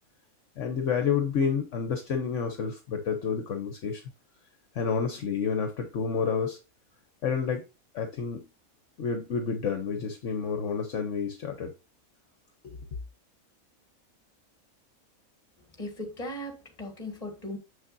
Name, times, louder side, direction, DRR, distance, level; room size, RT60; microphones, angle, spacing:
voice 1, 0.6-4.0 4.7-6.6 7.2-7.6 7.9-8.5 9.0-11.7 12.6-12.8, left 6 dB, 60° left, 1.1 m, -29 dB
voice 2, 15.8-17.6, left 1 dB, 25° left, 1.9 m, -37 dB
7.4 x 6.3 x 2.6 m
omnidirectional pair, 1.5 m